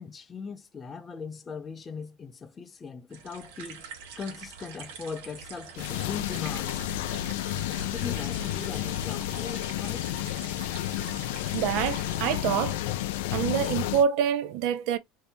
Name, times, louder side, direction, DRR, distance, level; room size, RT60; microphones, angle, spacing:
voice 1, 0.0-3.9 4.2-6.9 7.9-10.1, left 5 dB, 20° left, 0.4 m, -39 dB
sound 1, 3.1-12.3, right 6 dB, 90° right, 1.0 m, -45 dB
sound 2, 5.8-14.0, left 14 dB, 85° left, 0.3 m, -31 dB
voice 2, 11.5-12.8 13.3-15.0, right 8 dB, 60° right, 0.5 m, -26 dB
2.7 x 2.6 x 3.4 m
cardioid pair, 160°, 0 cm